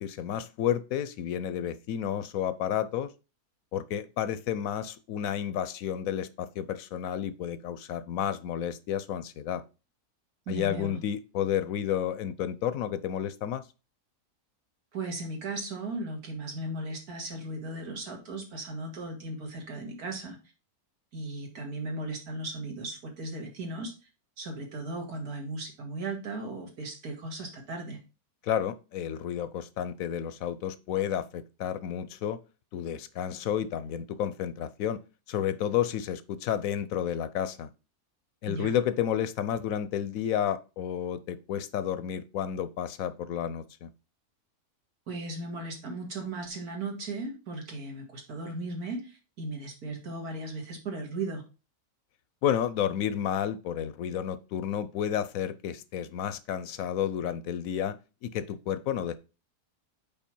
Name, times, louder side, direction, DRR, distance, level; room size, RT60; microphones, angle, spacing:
voice 1, 0.0-3.1 3.7-9.6 10.5-13.6 28.4-32.4 32.7-35.0 35.3-37.7 38.4-43.9 52.4-58.0 58.2-59.1, left 9 dB, 70° left, 14 dB, 0.9 m, -31 dB
voice 2, 10.5-11.0 14.9-20.4 21.1-23.9 24.4-28.0 38.5-38.7 45.1-51.4, right 2 dB, 80° right, 2 dB, 2.3 m, -36 dB
5.5 x 4.5 x 4.4 m, 0.31 s
omnidirectional pair, 1.6 m